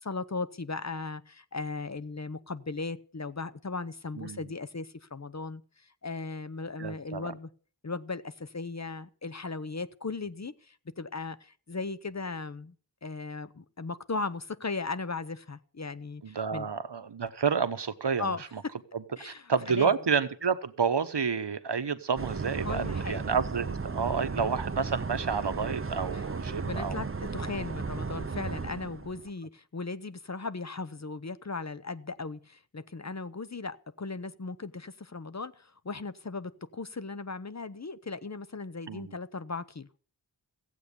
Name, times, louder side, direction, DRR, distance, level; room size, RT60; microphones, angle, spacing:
voice 1, 0.0-7.5 7.8-12.7 13.0-16.7 18.2-18.5 19.2-19.9 22.6-23.2 26.1-26.2 26.6-39.9, left 3 dB, 40° left, 0.8 m, -37 dB
voice 2, 6.8-7.3 16.2-18.3 18.9-27.0 38.9-39.1, right 6 dB, 70° right, 1.1 m, -30 dB
sound 1, 22.2-29.3, right 4 dB, 30° right, 0.7 m, -35 dB
15.5 x 8.4 x 6.9 m
wide cardioid pair, 60°, 42 cm